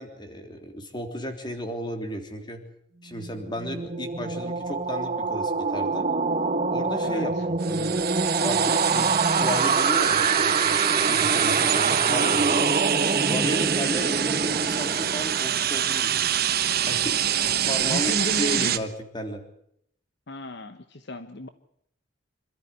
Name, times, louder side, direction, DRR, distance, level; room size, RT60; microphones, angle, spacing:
voice 1, 0.0-2.6 3.0-6.1 6.7-7.3 7.7-8.0 8.4-12.8 13.2-16.2 16.9-19.4, equal, 25° left, 6 dB, 3.4 m, -34 dB
sound 1, 3.1-15.7, right 3 dB, 35° right, 1.1 m, -26 dB
voice 2, 7.0-7.5 17.7-18.8 20.3-21.5, left 2 dB, 60° left, 10 dB, 1.2 m, -33 dB
sound 2, 7.6-18.8, right 10 dB, 55° right, 1.2 m, -25 dB
26.5 x 13.5 x 9.8 m, 0.72 s
head